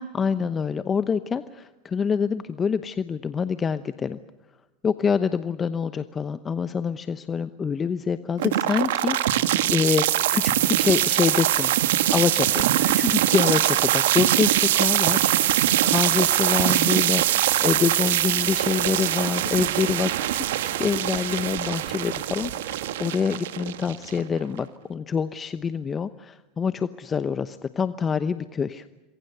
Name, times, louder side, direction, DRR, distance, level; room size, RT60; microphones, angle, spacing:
voice 1, 0.0-4.2 4.8-11.7 12.1-28.8, left 6 dB, 25° left, 12 dB, 0.9 m, -26 dB
sound 1, 8.4-24.4, right 13 dB, 75° right, 1.5 m, -23 dB
27.5 x 22.0 x 6.8 m, 1.1 s
hypercardioid pair, 95°, 0 cm